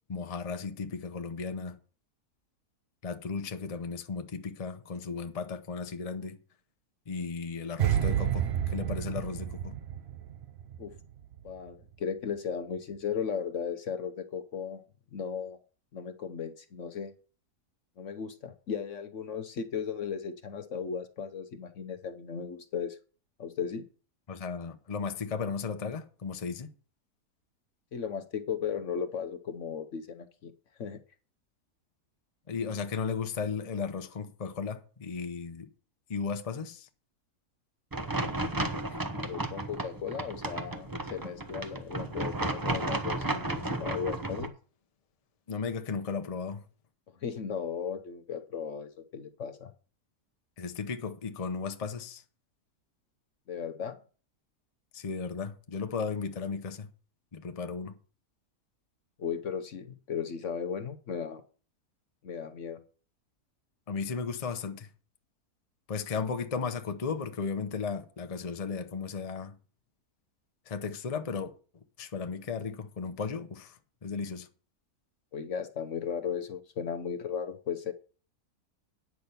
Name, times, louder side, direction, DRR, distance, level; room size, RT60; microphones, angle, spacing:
voice 1, 0.1-1.8 3.0-6.4 7.1-9.7 24.3-26.7 32.5-35.7 36.1-36.9 45.5-46.6 50.6-52.2 54.9-56.9 57.3-58.0 63.9-64.9 65.9-69.5 70.7-71.5 72.0-73.8 74.0-74.5, left 5 dB, 30° left, 0.8 m, -35 dB
sound 1, 7.8-11.0 11.2-11.5, right 10 dB, 55° right, 0.7 m, -30 dB
voice 2, 11.4-14.8 15.1-15.6 15.9-17.1 18.0-23.0 23.4-23.9 27.9-30.5 30.8-31.0 39.1-44.5 47.2-49.7 53.5-54.0 59.2-61.4 62.2-62.8 75.3-77.9, left 7 dB, 60° left, 1.0 m, -36 dB
sound 2, 37.9-44.5, right 2 dB, 20° right, 0.7 m, -33 dB
9.5 x 6.0 x 6.8 m
omnidirectional pair, 1.6 m